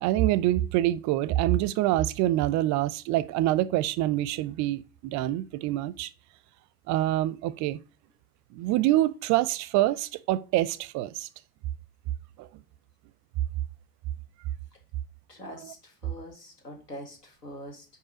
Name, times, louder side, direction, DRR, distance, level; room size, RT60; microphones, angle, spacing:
voice 1, 0.0-6.1 6.9-7.8 8.5-11.3 12.4-12.5 15.5-15.7, right 14 dB, 40° right, 0.4 m, -26 dB
voice 2, 15.3-17.9, left 1 dB, 90° left, 2.0 m, -43 dB
5.5 x 4.7 x 4.9 m
figure-of-eight pair, 70°, 47 cm